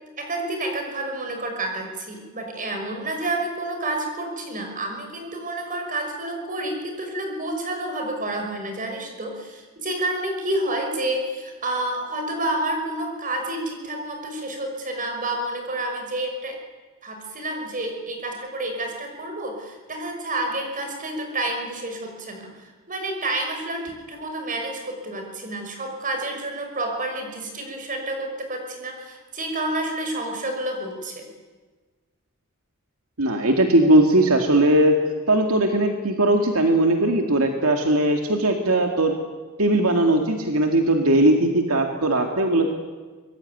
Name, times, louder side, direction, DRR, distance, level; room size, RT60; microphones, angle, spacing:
voice 1, 0.2-16.6 17.0-31.3, right 1 dB, 40° right, 3 dB, 5.9 m, -29 dB
voice 2, 33.2-35.0 35.3-39.2 39.6-42.7, right 1 dB, 75° right, 3 dB, 2.3 m, -19 dB
25.0 x 21.5 x 9.4 m, 1.4 s
head